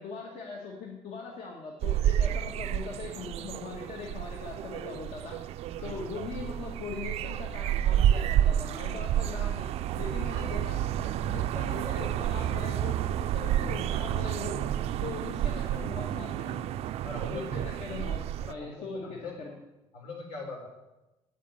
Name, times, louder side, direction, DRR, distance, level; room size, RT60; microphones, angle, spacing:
voice 1, 0.0-5.4 5.8-14.6 15.0-16.8 17.3-18.2 18.5-19.6, left 4 dB, 65° left, -1 dB, 1.9 m, -40 dB
sound 1, 1.8-18.5, right 11 dB, 70° right, 0.4 m, -30 dB
voice 2, 17.0-17.6 17.8-18.0 18.4-19.3 19.9-20.7, left 3 dB, 85° left, -1 dB, 4.6 m, -41 dB
9.4 x 7.4 x 8.6 m, 0.98 s
cardioid pair, 140°, 11 cm